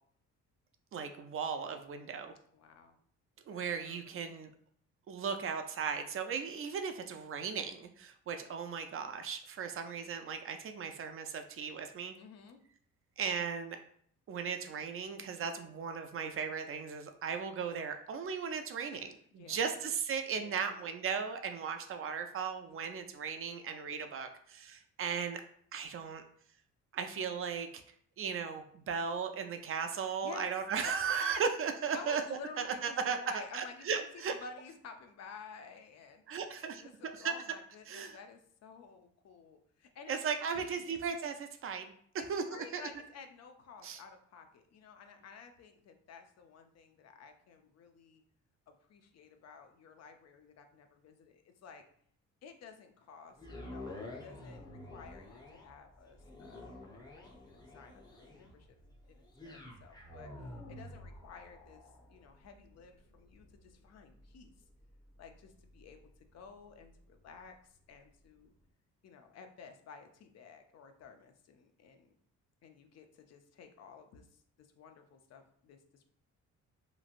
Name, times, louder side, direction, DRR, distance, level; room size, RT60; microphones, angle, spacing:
voice 1, 0.9-2.3 3.5-4.5 5.1-12.2 13.2-13.8 14.3-19.1 19.5-25.4 25.7-26.2 26.9-27.8 28.2-32.2 32.6-33.2 33.5-34.3 36.3-36.8 37.1-37.3 37.9-38.2 40.1-42.8 43.8-44.0, right 6 dB, 45° right, 7 dB, 0.4 m, -36 dB
voice 2, 2.5-3.0 3.5-4.5 12.2-12.6 18.9-19.1 19.4-19.7 20.3-20.9 30.2-30.5 31.2-31.3 31.9-40.2 40.4-41.0 42.2-48.2 48.7-51.8 52.4-53.4 53.6-61.8 62.1-64.5 65.2-66.0 66.3-67.5 67.9-68.5 69.0-72.1 72.6-74.3 74.6-76.0, left 5 dB, 60° left, 6 dB, 0.5 m, -53 dB
sound 1, 53.3-67.5 68.1-68.2, left 1 dB, 15° left, 0.7 m, -50 dB
3.0 x 2.6 x 2.4 m, 0.62 s
cardioid pair, 90°, 30 cm